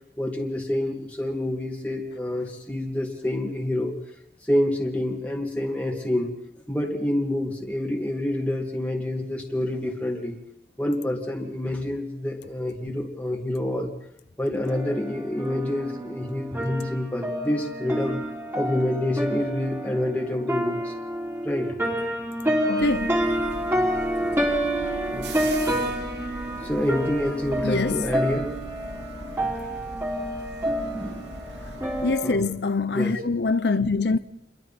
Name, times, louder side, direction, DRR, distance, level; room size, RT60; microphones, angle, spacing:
voice 1, 0.2-3.9 4.4-6.3 6.7-10.4 10.8-13.9 14.4-18.2 18.5-20.9 21.4-21.7 25.1-25.3 26.6-28.5 30.9-31.2 32.2-32.5 32.9-33.2, left 1 dB, 10° left, 2.5 m, -27 dB
sound 1, 14.7-32.4, right 1 dB, 15° right, 3.9 m, -28 dB
voice 2, 22.7-23.3 27.6-28.1 32.0-34.2, left 3 dB, 65° left, 0.7 m, -24 dB
sound 2, 22.8-32.1, right 2 dB, 75° right, 2.5 m, -40 dB
29.0 x 22.5 x 4.4 m
head